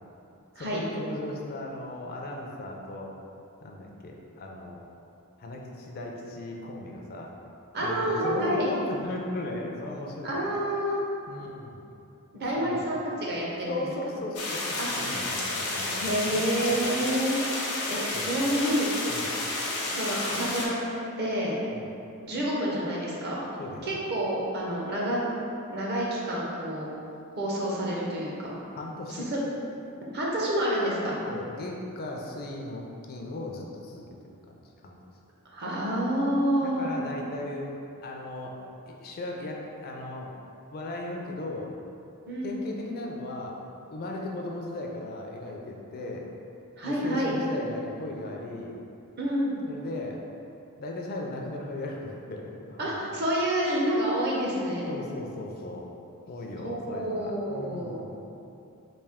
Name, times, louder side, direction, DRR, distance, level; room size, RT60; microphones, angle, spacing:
voice 1, 0.6-3.1 3.6-4.8 5.4-7.3 7.8-10.5 11.3-11.8 12.6-12.9 13.7-16.9 18.1-18.4 19.1-19.3 21.7-21.9 23.6-24.0 28.7-29.3 31.3-34.1 34.5-34.9 36.6-37.7 38.0-38.6 38.9-40.3 40.7-41.7 42.4-43.6 43.9-46.2 46.8-48.8 49.7-50.2 50.8-52.9 54.9-55.9 56.3-58.2, left 2 dB, 45° left, 0 dB, 0.4 m, -37 dB
voice 2, 7.7-8.7 10.2-11.0 12.3-13.8 14.8-15.2 16.0-17.4 17.9-18.9 19.8-20.8 21.2-21.6 22.2-23.4 23.8-25.2 25.7-26.9 27.4-28.5 29.1-29.4 30.1-31.2 35.5-36.9 42.3-42.6 46.8-47.3 49.2-49.6 52.8-54.9 56.6-58.1, right 1 dB, 50° right, -5 dB, 0.7 m, -28 dB
sound 1, 14.3-20.7, left 2 dB, 80° left, 0.7 m, -31 dB
3.3 x 2.6 x 3.5 m, 2.6 s
head